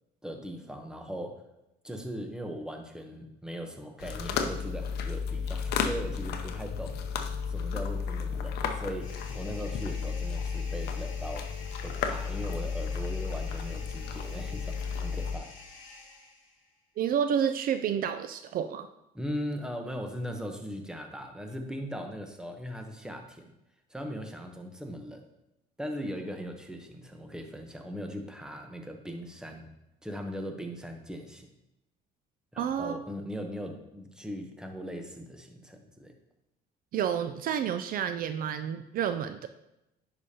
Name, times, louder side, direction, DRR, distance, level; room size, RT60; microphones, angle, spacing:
voice 1, 0.2-1.4 1.8-7.0 7.5-11.5 11.8-15.5 19.1-23.5 23.9-25.3 25.8-29.7 30.0-31.5 32.5-36.1, equal, 5° right, 4 dB, 0.9 m, -39 dB
sound 1, 4.0-15.4, left 6 dB, 70° left, 0.7 m, -33 dB
sound 2, 9.0-16.7, left 3 dB, 50° left, 1.8 m, -49 dB
voice 2, 17.0-18.9 32.6-33.0 36.9-39.5, right 8 dB, 60° right, 10 dB, 0.4 m, -30 dB
10.0 x 5.0 x 2.8 m, 0.90 s
cardioid pair, 110°, 17 cm